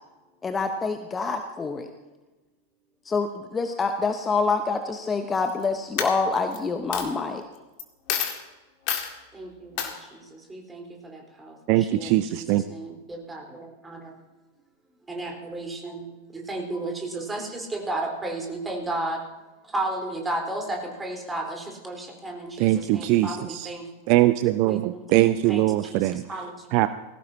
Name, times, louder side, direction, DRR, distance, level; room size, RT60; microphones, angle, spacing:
voice 1, 0.4-1.9 3.1-7.4, left 4 dB, 15° left, 7 dB, 1.0 m, -26 dB
Coin (dropping), 5.3-5.6 6.0-6.6 6.9-7.1 7.8-7.9 8.1-8.4 8.9-9.1 9.8-9.9, left 9 dB, 45° left, 2.1 m, -28 dB
voice 2, 9.3-14.1 15.1-16.1 16.3-19.2 19.6-23.9 24.7-26.7, right 2 dB, 10° right, 1 dB, 4.0 m, -34 dB
voice 3, 11.7-12.6 22.6-23.7 24.1-26.2 26.7-26.9, right 15 dB, 45° right, 13 dB, 0.5 m, -21 dB
20.0 x 17.0 x 2.9 m, 1.1 s
figure-of-eight pair, 90°, 0 cm